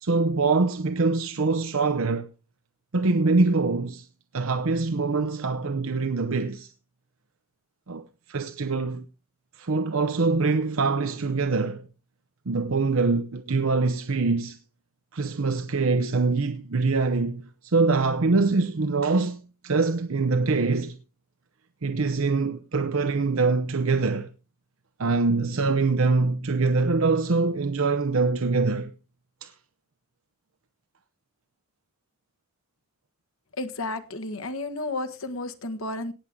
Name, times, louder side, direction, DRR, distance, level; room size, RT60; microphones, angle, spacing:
voice 1, 0.0-2.3 2.9-4.1 4.3-6.7 7.9-9.0 9.6-11.9 12.5-14.6 15.1-21.0 21.8-24.3 25.0-28.9 29.4-29.5, right 3 dB, 70° right, 0.8 m, -24 dB
voice 2, 33.6-36.1, left 2 dB, 70° left, 1.5 m, -32 dB
18.0 x 7.3 x 3.8 m
head